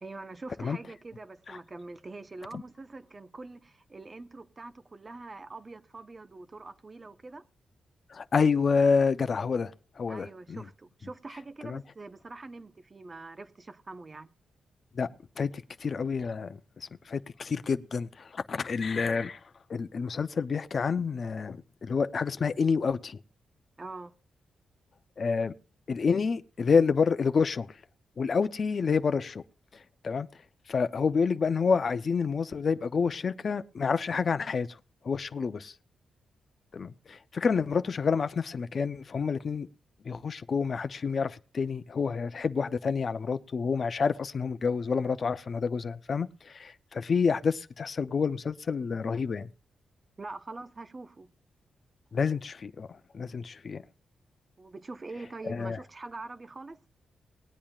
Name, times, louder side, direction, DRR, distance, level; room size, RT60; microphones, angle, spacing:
voice 1, 0.0-7.4 10.1-14.3 23.8-24.1 50.2-51.3 54.6-56.8, right 3 dB, 35° right, 1.0 m, -44 dB
voice 2, 8.1-10.6 11.6-11.8 14.9-15.5 15.8-19.4 19.7-23.2 25.2-25.5 25.9-27.8 28.2-29.4 29.7-30.3 30.7-34.7 35.0-35.7 36.7-39.7 40.0-49.5 52.1-53.8 55.4-55.8, left 5 dB, 55° left, 0.6 m, -28 dB
20.5 x 8.6 x 2.4 m
cardioid pair, 65°, 0 cm